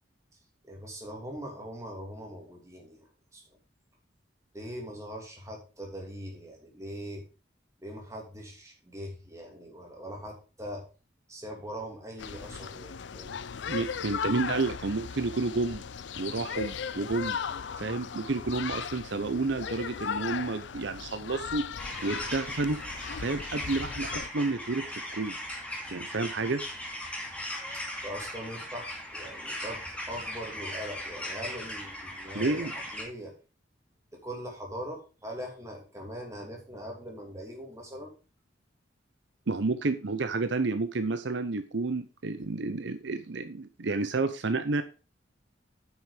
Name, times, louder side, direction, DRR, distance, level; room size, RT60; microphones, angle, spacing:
voice 1, 0.6-3.4 4.5-7.3 7.8-10.8 11.3-13.4 27.7-29.8 30.1-33.3 34.1-38.1, equal, 15° right, 1 dB, 2.7 m, -41 dB
sound 1, 12.2-24.3, left 6 dB, 70° left, 0.5 m, -37 dB
voice 2, 13.7-15.8 16.2-17.4 17.8-21.7 22.0-22.8 23.2-25.4 25.9-26.6 32.3-32.7 39.5-44.8, right 3 dB, 70° right, 10 dB, 0.7 m, -30 dB
sound 2, 21.8-33.0, left 1 dB, 5° left, 2.2 m, -38 dB
9.1 x 6.3 x 4.9 m, 0.33 s
head